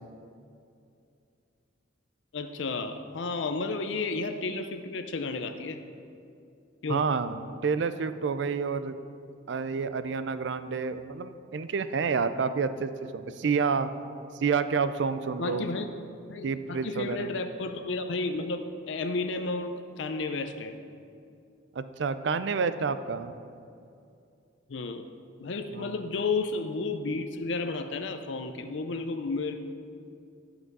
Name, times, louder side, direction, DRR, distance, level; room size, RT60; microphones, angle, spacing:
voice 1, 2.3-5.8 6.8-7.1 15.4-15.9 16.3-20.7 24.7-25.0 25.4-29.6, left 3 dB, 70° left, 7 dB, 0.5 m, -32 dB
voice 2, 6.9-8.9 9.5-13.9 14.4-15.7 16.4-17.3 21.8-23.3 25.7-26.0, right 5 dB, 65° right, 12 dB, 0.4 m, -29 dB
11.5 x 5.9 x 5.4 m, 2.5 s
head